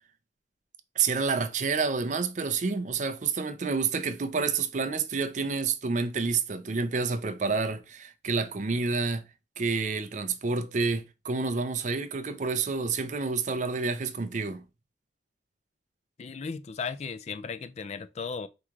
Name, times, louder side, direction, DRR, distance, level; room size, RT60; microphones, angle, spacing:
voice 1, 1.0-9.2 9.6-14.6, right 4 dB, 45° right, 0.5 m, -29 dB
voice 2, 16.2-18.5, left 5 dB, 40° left, 0.3 m, -36 dB
4.8 x 2.9 x 3.5 m
head